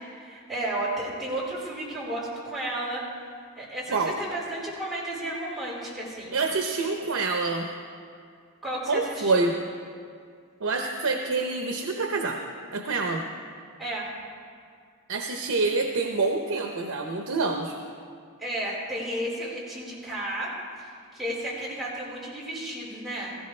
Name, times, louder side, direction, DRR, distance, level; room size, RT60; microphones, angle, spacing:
voice 1, 0.0-3.0 3.6-6.3 8.6-9.5 13.8-14.1 18.4-23.4, right 1 dB, ahead, -8 dB, 4.4 m, -33 dB
voice 2, 6.3-7.7 8.9-9.6 10.6-12.4 12.7-13.2 15.1-17.7, right 3 dB, 85° right, 3 dB, 0.8 m, -26 dB
18.0 x 15.0 x 3.3 m, 2.2 s
head